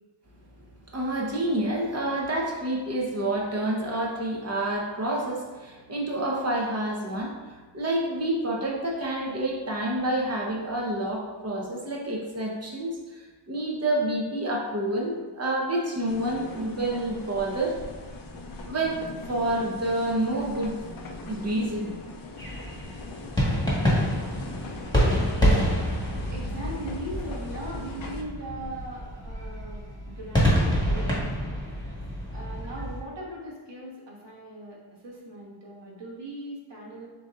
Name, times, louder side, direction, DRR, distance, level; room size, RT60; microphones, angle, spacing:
voice 1, 0.9-17.8 18.6-20.7 21.3-21.9, right 1 dB, 30° right, -2 dB, 0.9 m, -28 dB
sound 1, 16.1-28.2, left 3 dB, 45° left, 0.5 m, -41 dB
sound 2, 22.4-33.0, equal, 10° left, 1.4 m, -27 dB
voice 2, 26.3-31.3 32.3-37.1, right 1 dB, 55° right, -4 dB, 1.4 m, -39 dB
7.3 x 2.8 x 2.5 m, 1.3 s
wide cardioid pair, 105°, 50 cm